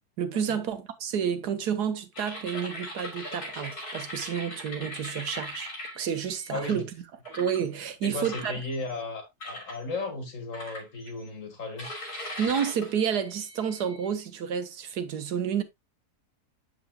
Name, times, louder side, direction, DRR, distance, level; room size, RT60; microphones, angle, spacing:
voice 1, 0.2-6.9 7.3-8.5 12.4-15.6, right 8 dB, 85° right, 1.6 m, -30 dB
sound 1, 2.1-6.7 7.3-7.6 8.2-9.0 9.4-9.8 10.5-11.2 11.8-14.1, left 1 dB, 70° left, 3.7 m, -40 dB
voice 2, 6.5-6.9 8.0-11.9, left 3 dB, 55° left, 2.2 m, -35 dB
8.1 x 7.5 x 2.3 m
omnidirectional pair, 1.7 m